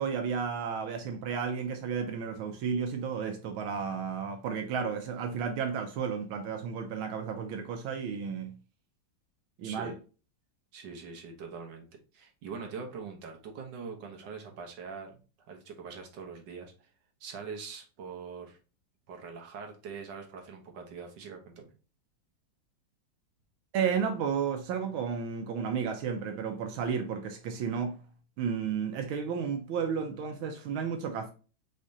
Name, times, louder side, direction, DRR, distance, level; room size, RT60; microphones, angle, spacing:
voice 1, 0.0-8.5 9.6-10.0 23.7-28.0 28.4-31.3, right 6 dB, 85° right, 1.5 m, -32 dB
voice 2, 9.6-10.0 10.7-11.9 12.1-15.2 15.5-16.9 17.2-18.6 19.1-21.7, right 5 dB, 65° right, 1.6 m, -43 dB
5.0 x 3.3 x 2.7 m
omnidirectional pair, 2.2 m